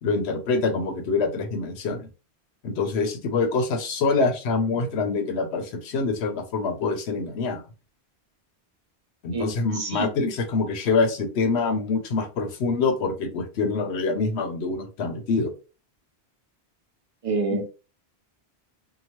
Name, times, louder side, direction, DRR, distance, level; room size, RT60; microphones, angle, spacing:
voice 1, 0.0-2.1 2.6-7.6 9.2-15.5 17.5-17.6, left 4 dB, 80° left, 0.9 m, -25 dB
voice 2, 9.7-10.1 17.2-17.7, right 4 dB, 55° right, 0.4 m, -27 dB
2.8 x 2.1 x 2.9 m
omnidirectional pair, 1.1 m